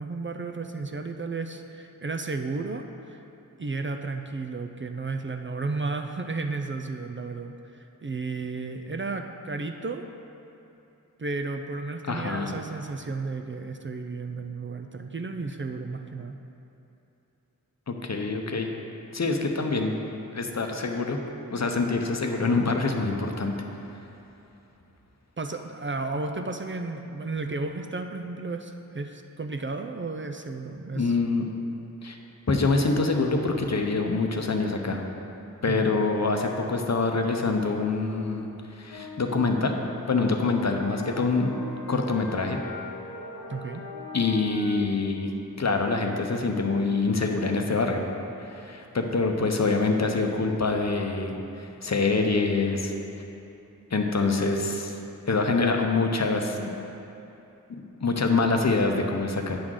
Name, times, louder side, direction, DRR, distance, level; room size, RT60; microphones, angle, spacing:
voice 1, 0.0-3.2 3.6-10.1 11.2-16.4 25.4-31.2 35.6-35.9 43.5-43.8, right 3 dB, 35° right, 5 dB, 0.4 m, -33 dB
voice 2, 12.1-12.5 17.9-18.7 19.1-21.2 21.5-23.5 30.9-31.4 32.0-32.2 32.5-35.0 35.6-38.5 38.8-39.8 40.1-41.5 41.9-42.6 44.1-45.3 45.6-48.0 48.4-52.9 53.9-55.0 55.3-56.8 57.7-59.6, left 3 dB, 50° left, 3 dB, 0.7 m, -25 dB
sound 1, 38.9-44.8, left 3 dB, 90° left, 1.1 m, -41 dB
8.7 x 3.7 x 6.2 m, 2.9 s
wide cardioid pair, 50°, 34 cm